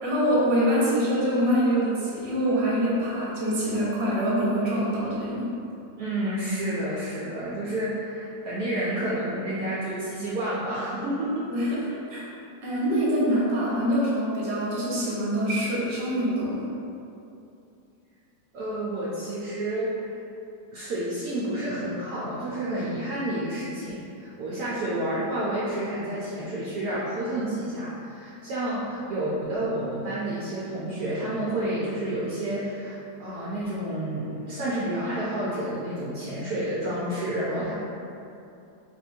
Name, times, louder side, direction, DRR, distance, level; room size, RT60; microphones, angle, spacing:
voice 1, 0.0-5.4 11.5-11.8 12.1-12.3 12.6-16.7, equal, 45° right, -7 dB, 1.1 m, -25 dB
voice 2, 6.0-11.5 11.8-12.0 18.5-20.2 20.7-37.7, right 1 dB, 65° right, -8 dB, 1.0 m, -30 dB
3.4 x 2.6 x 4.2 m, 2.7 s
omnidirectional pair, 1.9 m